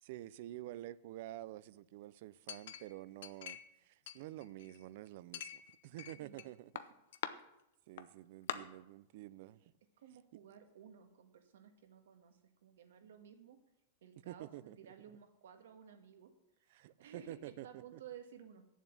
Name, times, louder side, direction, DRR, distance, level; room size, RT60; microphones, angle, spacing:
voice 1, 0.0-6.7 7.9-9.7 14.3-14.8 16.7-17.7 17.9-18.0, right 14 dB, 45° right, 0.4 m, -49 dB
Chink clink, 2.5-3.8 4.1-4.8 5.3-6.5 6.8-7.3 8.0-8.1 8.5-8.6, left 10 dB, 65° left, 0.7 m, -44 dB
voice 2, 6.2-6.5 10.0-13.6 14.0-16.3 17.0-18.7, right 8 dB, 85° right, 1.6 m, -55 dB
8.0 x 7.3 x 8.4 m
supercardioid pair, 175°, 0 cm